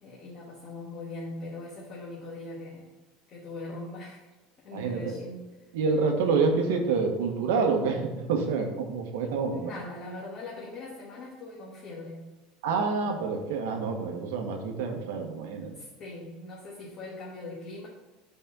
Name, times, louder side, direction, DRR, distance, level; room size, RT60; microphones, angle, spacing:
voice 1, 0.0-2.9 3.3-4.3 4.6-5.5 9.5-12.3 15.7-17.9, left 2 dB, 40° left, -5 dB, 1.4 m, -41 dB
voice 2, 4.7-5.2 5.7-9.7 12.6-15.7, right 4 dB, 85° right, 4 dB, 1.2 m, -27 dB
5.6 x 4.2 x 5.9 m, 1.1 s
supercardioid pair, 140°, 0 cm